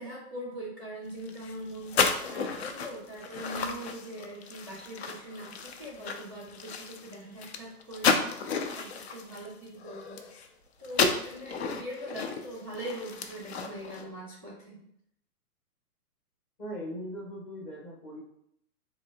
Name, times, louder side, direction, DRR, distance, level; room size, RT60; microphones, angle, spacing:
voice 1, 0.0-8.3 8.7-10.2 10.8-14.8, right 1 dB, 20° right, -11 dB, 0.3 m, -41 dB
sound 1, 1.2-10.5 10.8-14.0, left 5 dB, 45° left, 0.4 m, -32 dB
voice 2, 16.6-18.2, equal, 15° left, -3 dB, 0.8 m, -39 dB
3.7 x 2.7 x 3.5 m, 0.72 s
hypercardioid pair, 155°, 46 cm